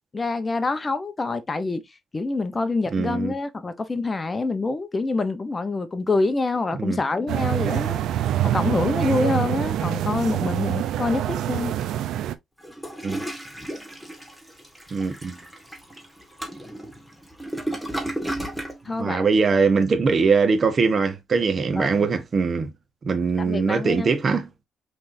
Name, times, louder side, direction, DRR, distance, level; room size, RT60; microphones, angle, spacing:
voice 1, 0.1-1.8 2.1-11.7 18.8-19.3 21.8-22.1 23.4-24.2, left 3 dB, 25° left, 0.8 m, -26 dB
voice 2, 2.9-3.3 6.8-7.0 13.0-13.2 14.9-15.4 18.9-22.7 23.0-24.5, right 4 dB, 40° right, 1.2 m, -22 dB
sound 1, 7.3-12.3, right 12 dB, 80° right, 0.5 m, -25 dB
Toilet flush, 12.6-18.8, right 1 dB, ahead, 1.7 m, -33 dB
5.7 x 3.3 x 2.6 m
cardioid pair, 90°, 0 cm